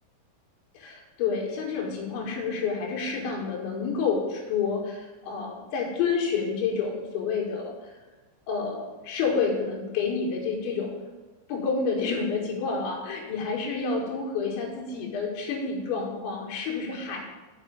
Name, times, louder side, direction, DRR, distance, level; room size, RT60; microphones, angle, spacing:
voice 1, 0.7-7.9 8.5-10.9 11.5-17.2, left 5 dB, 70° left, -1 dB, 3.8 m, -29 dB
7.1 x 6.1 x 7.4 m, 1.3 s
omnidirectional pair, 5.9 m